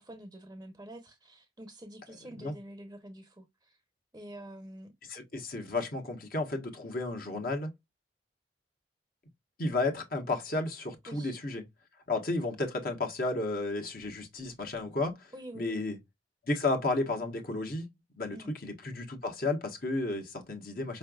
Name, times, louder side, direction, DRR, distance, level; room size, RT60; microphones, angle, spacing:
voice 1, 0.0-3.8 4.1-4.9 11.1-11.4 15.3-15.9 18.3-18.5, right 1 dB, 15° right, 0.7 m, -47 dB
voice 2, 5.1-7.7 9.6-11.6 12.1-16.0 16.5-17.8 18.2-18.4 18.6-21.0, left 2 dB, 55° left, 1.2 m, -32 dB
4.9 x 3.2 x 2.3 m
head